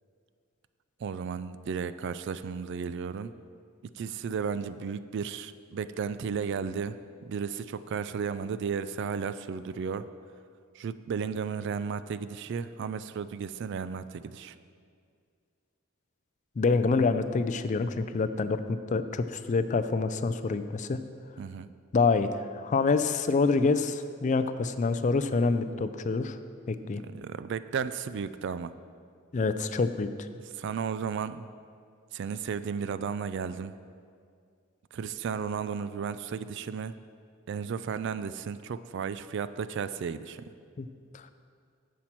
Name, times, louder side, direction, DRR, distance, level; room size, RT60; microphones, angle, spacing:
voice 1, 1.0-3.3 3.9-7.0 7.2-10.0 10.8-14.5 21.4-21.7 27.0-28.7 30.6-31.5 32.1-33.8 34.9-36.9 37.5-40.4, right 6 dB, 60° right, 14 dB, 0.3 m, -34 dB
voice 2, 16.6-21.0 21.9-26.4 26.7-27.0 29.3-30.1 40.8-40.9 41.1-41.2, left 4 dB, 35° left, 11 dB, 0.4 m, -26 dB
10.0 x 7.3 x 4.4 m, 2.2 s
head